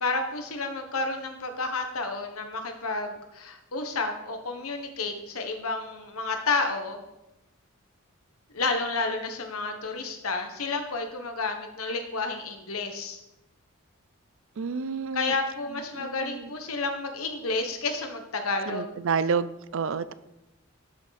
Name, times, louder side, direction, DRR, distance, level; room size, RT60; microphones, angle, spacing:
voice 1, 0.0-7.0 8.5-13.2 15.1-18.9, left 3 dB, 85° left, 6 dB, 1.4 m, -30 dB
voice 2, 14.6-15.3 16.0-16.5 18.7-20.1, right 5 dB, 65° right, 16 dB, 0.4 m, -29 dB
11.5 x 6.2 x 4.2 m, 0.90 s
head